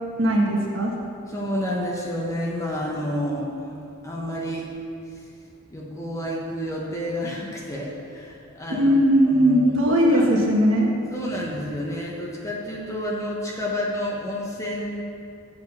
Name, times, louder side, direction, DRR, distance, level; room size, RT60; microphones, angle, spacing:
voice 1, 0.2-0.9 8.7-10.9, equal, 65° right, -2 dB, 1.3 m, -19 dB
voice 2, 1.3-3.7 4.0-4.6 5.7-8.9 9.3-9.7 10.1-10.3 11.1-15.0, equal, 15° left, -3 dB, 1.0 m, -30 dB
7.1 x 5.1 x 6.9 m, 2.4 s
head